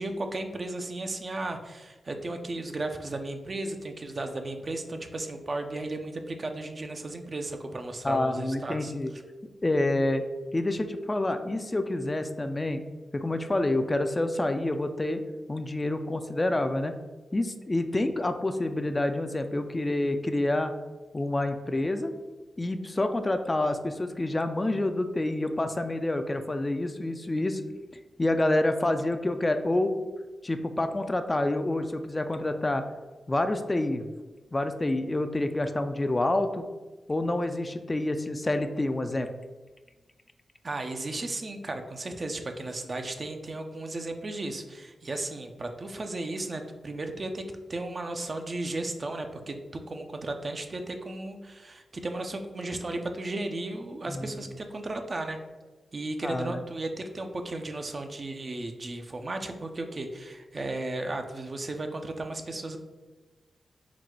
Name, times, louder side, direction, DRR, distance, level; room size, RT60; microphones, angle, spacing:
voice 1, 0.0-9.2 40.6-47.4 47.7-55.4 55.9-62.8, right 2 dB, 50° right, 5 dB, 0.5 m, -35 dB
voice 2, 8.0-9.1 9.6-10.2 10.5-12.8 13.1-15.2 15.5-17.0 17.3-20.7 21.1-22.1 22.6-27.6 28.2-30.0 30.4-32.8 33.3-34.1 34.5-36.7 37.1-39.3 54.1-54.3 56.2-56.6, left 2 dB, 30° left, 8 dB, 0.4 m, -28 dB
4.0 x 2.2 x 4.4 m, 1.2 s
supercardioid pair, 40°, 0 cm